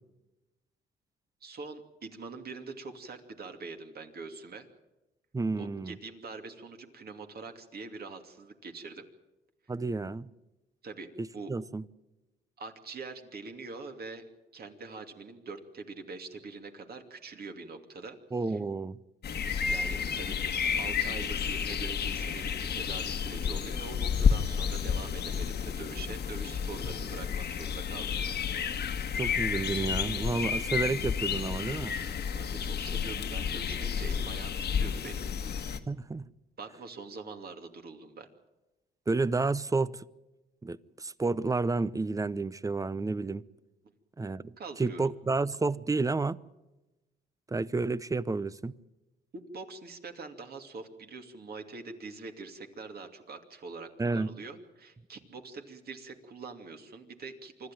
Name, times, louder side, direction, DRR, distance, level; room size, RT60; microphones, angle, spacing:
voice 1, 1.4-4.7 5.6-9.0 10.8-11.1 11.3-11.5 12.6-14.2 14.5-18.2 18.5-18.6 19.6-20.5 20.8-28.2 32.3-35.2 36.6-38.3 44.6-45.0 49.3-57.7, right 3 dB, 50° right, 5 dB, 2.7 m, -44 dB
voice 2, 5.3-6.0 9.7-10.3 11.2-11.8 18.3-19.0 29.1-31.9 35.9-36.3 39.1-40.0 40.6-43.4 44.2-46.4 47.5-48.7 54.0-54.3, right 3 dB, 15° right, 19 dB, 0.7 m, -30 dB
sound 1, 19.2-35.8, left 7 dB, 55° left, 1.5 m, -31 dB
25.5 x 13.0 x 9.1 m, 1.0 s
cardioid pair, 90°, 20 cm